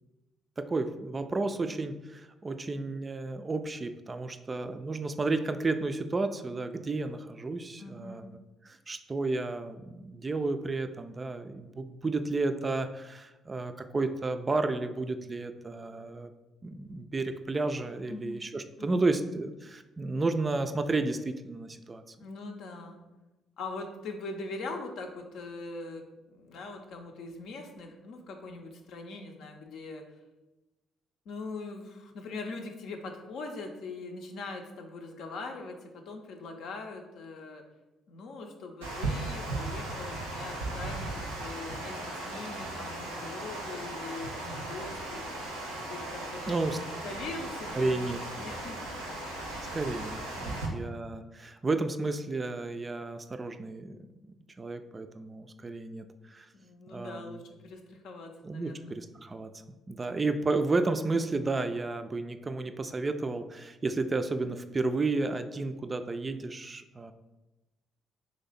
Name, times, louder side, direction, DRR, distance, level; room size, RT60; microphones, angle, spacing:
voice 1, 0.6-8.3 8.6-16.3 16.6-22.0 46.5-46.8 47.7-48.2 49.7-54.1 54.6-56.5 56.9-57.4 58.4-59.5 59.9-67.1, right 3 dB, 30° right, 8 dB, 0.3 m, -32 dB
voice 2, 7.8-8.3 18.1-18.4 18.8-19.0 22.2-23.0 23.6-26.0 26.3-30.0 31.3-37.6 38.1-45.3 45.9-48.0 48.4-48.8 50.4-50.9 56.5-59.0, left 3 dB, 65° left, 3 dB, 0.5 m, -42 dB
Water, 38.8-50.7, right 2 dB, 90° right, 0.7 m, -37 dB
3.1 x 2.8 x 4.0 m, 1.0 s
hypercardioid pair, 45°, 0 cm